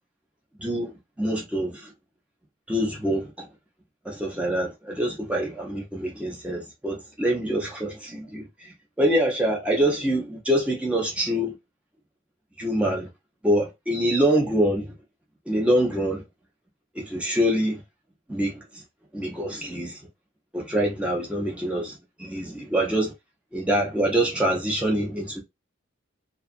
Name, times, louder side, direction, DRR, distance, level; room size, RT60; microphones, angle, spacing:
voice 1, 0.6-1.9 2.7-3.5 4.0-11.5 12.6-13.1 13.4-14.9 15.5-16.2 16.9-17.8 18.3-18.8 19.1-20.0 20.5-23.1 23.5-25.4, right 1 dB, 5° right, 0.6 m, -25 dB
2.6 x 2.4 x 2.4 m
head